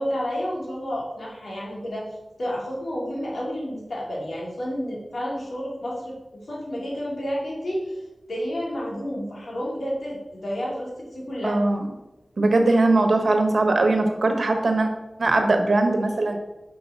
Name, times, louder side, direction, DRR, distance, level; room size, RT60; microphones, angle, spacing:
voice 1, 0.0-2.1 2.4-6.1 6.5-8.0 8.3-11.7, equal, 80° left, -4 dB, 2.7 m, -30 dB
voice 2, 11.4-11.8 12.4-14.9 15.2-16.4, right 2 dB, 75° right, 5 dB, 1.2 m, -20 dB
5.6 x 5.3 x 6.5 m, 1.0 s
cardioid pair, 45°, 0 cm